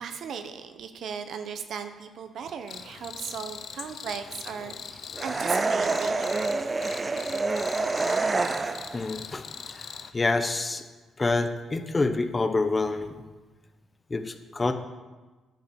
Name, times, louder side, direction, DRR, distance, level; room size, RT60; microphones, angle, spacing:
voice 1, 0.0-6.6, right 7 dB, 65° right, 8 dB, 0.8 m, -37 dB
Cricket, 2.7-10.1, left 6 dB, 55° left, 0.6 m, -42 dB
sound 1, 5.2-9.0, right 3 dB, 25° right, 0.4 m, -27 dB
voice 2, 8.9-9.4 10.1-10.8 11.2-13.2 14.1-14.7, left 3 dB, 25° left, 8 dB, 0.8 m, -27 dB
10.5 x 5.5 x 6.9 m, 1.3 s
cardioid pair, 90°, 0 cm